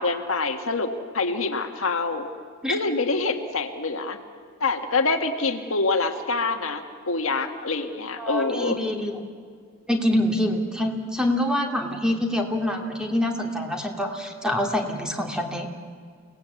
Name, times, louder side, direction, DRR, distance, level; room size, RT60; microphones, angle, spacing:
voice 1, 0.0-2.3 2.7-4.2 4.6-8.8, left 3 dB, 75° left, 5 dB, 1.8 m, -26 dB
voice 2, 8.2-9.3 9.9-15.7, left 1 dB, 5° right, 2 dB, 2.7 m, -25 dB
29.0 x 19.0 x 8.4 m, 2.1 s
head